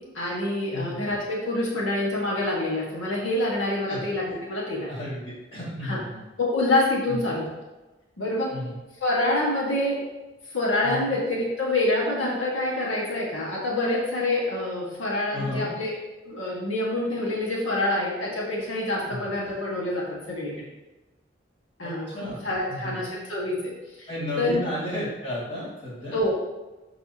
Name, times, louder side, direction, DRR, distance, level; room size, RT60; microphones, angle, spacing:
voice 1, 0.1-5.0 5.8-6.0 6.4-7.5 8.2-8.5 9.0-10.0 10.5-15.9 16.3-20.7 21.8-23.7 24.0-24.1 24.4-24.6 26.1-26.3, left 1 dB, 80° left, -4 dB, 1.8 m, -26 dB
voice 2, 4.9-6.2 7.1-7.2 8.5-8.7 10.8-11.1 15.3-15.7 19.1-19.2 21.8-22.4 22.7-23.0 24.1-26.2, left 1 dB, 25° left, -7 dB, 2.4 m, -33 dB
11.0 x 4.0 x 2.9 m, 1.1 s
head